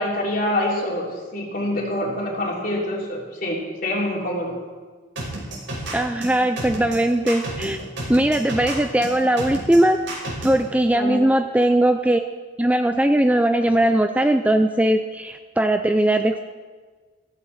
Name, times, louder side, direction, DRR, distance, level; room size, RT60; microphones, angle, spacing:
voice 1, 0.0-4.5 10.9-11.2, left 1 dB, 45° left, -3 dB, 3.3 m, -26 dB
sound 1, 5.2-10.6, right 1 dB, 75° right, 5.4 m, -31 dB
voice 2, 5.9-7.8 8.1-10.0 10.4-12.2 12.6-16.4, right 1 dB, 5° right, 7 dB, 0.4 m, -19 dB
15.5 x 15.0 x 4.3 m, 1.5 s
head